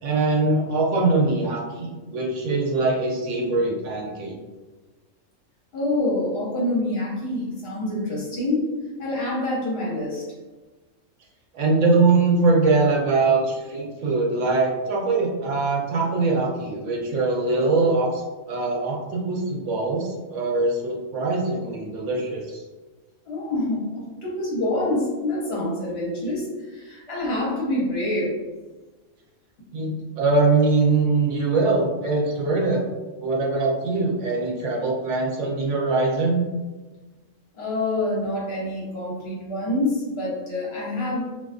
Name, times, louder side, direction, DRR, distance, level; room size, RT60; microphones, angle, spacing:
voice 1, 0.0-4.4 11.5-18.2 18.5-22.6 29.7-32.8 33.2-36.5, right 3 dB, 75° right, -2 dB, 0.9 m, -22 dB
voice 2, 5.7-8.7 9.0-10.3 13.9-14.0 23.2-28.4 37.5-41.2, left 1 dB, 55° left, -5 dB, 0.9 m, -26 dB
2.4 x 2.3 x 2.4 m, 1.2 s
omnidirectional pair, 1.3 m